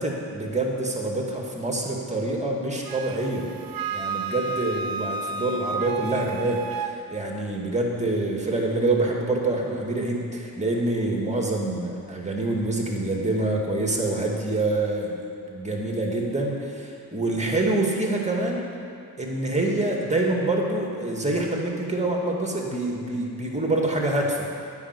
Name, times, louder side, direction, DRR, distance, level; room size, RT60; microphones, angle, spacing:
voice 1, 0.0-3.5 3.9-15.2 15.5-18.6 19.2-24.5, right 2 dB, 15° right, 0 dB, 2.2 m, -26 dB
Wind instrument woodwind instrument, 2.9-6.9, right 4 dB, 65° right, 0.6 m, -31 dB
10.0 x 5.5 x 8.3 m, 2.6 s
cardioid pair, 55°, 39 cm